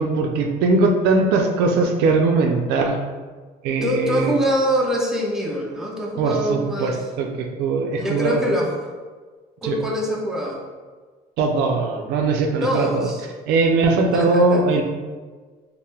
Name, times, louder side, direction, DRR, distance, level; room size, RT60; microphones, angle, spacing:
voice 1, 0.0-3.0 3.6-4.3 6.2-8.4 9.6-9.8 11.4-13.1 13.5-14.8, right 3 dB, 85° right, 3 dB, 0.4 m, -20 dB
voice 2, 3.8-7.0 8.0-8.9 9.6-10.6 12.6-13.3 14.1-14.6, equal, 5° right, -3 dB, 0.5 m, -24 dB
2.7 x 2.1 x 3.3 m, 1.4 s
cardioid pair, 110°, 17 cm